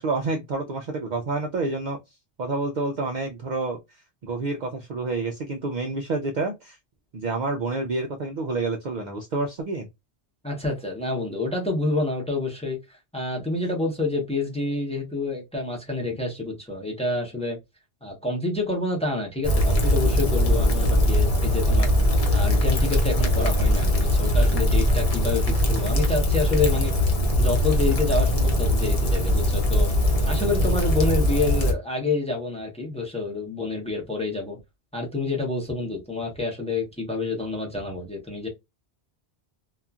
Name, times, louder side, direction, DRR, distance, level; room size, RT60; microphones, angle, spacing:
voice 1, 0.0-2.0 2.4-6.8 7.1-9.9, right 3 dB, 55° right, 0.5 m, -28 dB
voice 2, 10.4-17.6 18.0-21.9 22.3-27.1 27.4-34.6 34.9-38.5, left 2 dB, 5° left, 0.8 m, -28 dB
Rain, 19.4-31.7, left 1 dB, 40° left, 0.7 m, -21 dB
2.8 x 2.4 x 2.3 m
omnidirectional pair, 1.1 m